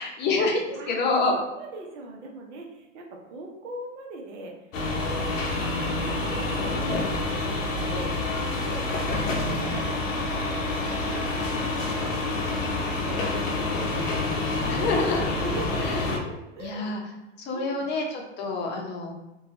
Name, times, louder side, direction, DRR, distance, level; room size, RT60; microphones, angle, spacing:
voice 1, 0.0-1.3 14.7-15.3 16.6-17.0 17.4-19.1, left 3 dB, 25° left, 1 dB, 0.6 m, -27 dB
voice 2, 0.7-4.6 4.9-7.0 7.3-8.1 8.4-15.0 15.4-16.9 17.5-17.9, right 2 dB, 65° right, 1 dB, 0.8 m, -41 dB
sound 1, 4.7-16.2, left 2 dB, 80° left, 0.7 m, -28 dB
2.8 x 2.3 x 2.8 m, 0.99 s
hypercardioid pair, 100°, 38 cm